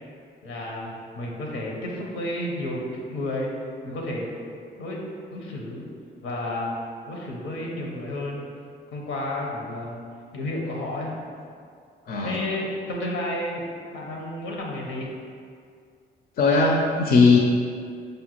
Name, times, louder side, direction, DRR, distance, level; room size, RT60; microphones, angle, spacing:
voice 1, 0.4-3.5 3.8-4.3 4.8-5.0 5.3-5.8 6.2-6.8 7.1-8.5 8.9-10.0 10.3-11.2 12.2-13.6 13.9-15.1, left 1 dB, 85° left, -2 dB, 0.7 m, -31 dB
voice 2, 12.1-12.4 16.4-17.4, left 4 dB, 50° left, 0 dB, 0.4 m, -18 dB
5.1 x 2.2 x 3.0 m, 2.2 s
cardioid pair, 90°, 20 cm